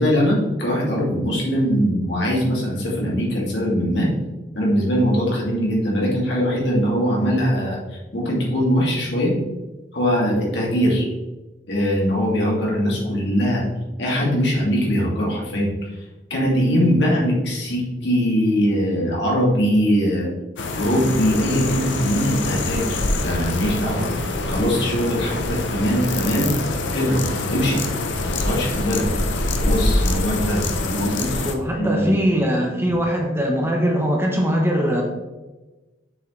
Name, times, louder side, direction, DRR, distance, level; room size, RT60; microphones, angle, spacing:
voice 1, 0.0-4.1 4.5-7.8 8.1-9.3 9.9-11.1 11.7-13.6 14.0-15.7 16.3-20.3 20.8-24.1 24.5-26.6 26.9-27.2 27.5-27.8 28.4-29.1 29.6-31.5 31.8-32.3, equal, 70° left, -4 dB, 2.4 m, -21 dB
sound 1, 20.6-31.5, left 2 dB, 90° left, 0.8 m, -25 dB
voice 2, 31.4-35.0, equal, 15° right, 1 dB, 1.0 m, -21 dB
6.9 x 6.3 x 3.2 m, 1.1 s
head